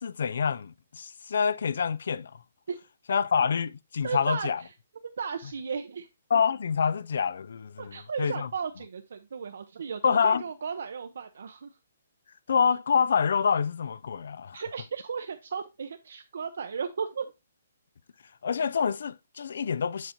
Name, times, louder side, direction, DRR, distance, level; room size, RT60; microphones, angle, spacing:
voice 1, 0.0-2.3 3.1-4.6 6.3-8.5 10.0-10.4 12.5-14.6 18.4-20.1, left 6 dB, 70° left, 0.4 m, -26 dB
voice 2, 4.0-4.5 5.2-6.1 7.8-11.7 14.5-17.3, right 6 dB, 70° right, 0.7 m, -35 dB
7.4 x 2.8 x 5.1 m
hypercardioid pair, 150°, 0 cm